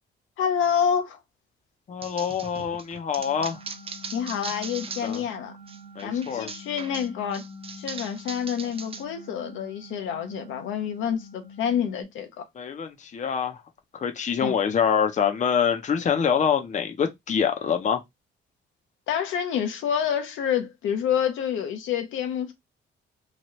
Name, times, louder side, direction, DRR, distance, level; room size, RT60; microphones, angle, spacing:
voice 1, 0.4-1.2 4.1-5.5 6.0-7.4 7.8-12.4 14.4-14.6 19.1-22.5, left 8 dB, 80° left, 0.8 m, -28 dB
voice 2, 1.9-3.6 5.0-5.2 6.0-6.5 12.6-13.6 13.9-18.0, left 7 dB, 40° left, 0.6 m, -25 dB
sound 1, 2.0-5.3 5.7-9.0, right 5 dB, 30° right, 0.5 m, -40 dB
sound 2, 3.2-12.0, left 2 dB, 10° right, 0.8 m, -45 dB
2.9 x 2.3 x 3.0 m
cardioid pair, 90°, 20 cm